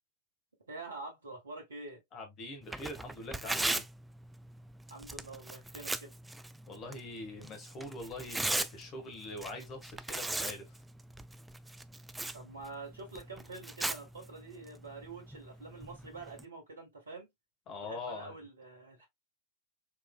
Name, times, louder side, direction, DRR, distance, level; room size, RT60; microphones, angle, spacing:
voice 1, 0.7-2.0 4.9-6.1 12.3-17.3 17.8-19.1, right 3 dB, 70° right, 1.4 m, -46 dB
voice 2, 2.1-3.9 6.7-10.8 17.7-18.4, left 2 dB, 30° left, 1.4 m, -43 dB
Tearing, 2.6-16.4, right 2 dB, 5° right, 0.3 m, -40 dB
4.6 x 3.2 x 2.2 m
figure-of-eight pair, 90°, 0 cm